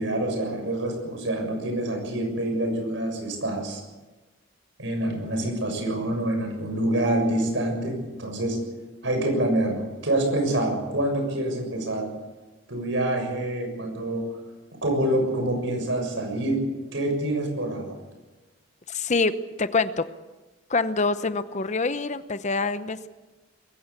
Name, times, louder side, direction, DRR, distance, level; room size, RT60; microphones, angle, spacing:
voice 1, 0.0-3.8 4.8-8.6 9.0-12.1 12.7-14.2 14.8-16.6 16.9-17.9, right 1 dB, 65° right, 4 dB, 6.8 m, -26 dB
voice 2, 18.9-20.1 20.7-23.1, left 3 dB, 35° left, 12 dB, 0.8 m, -25 dB
22.5 x 15.5 x 8.4 m, 1.1 s
head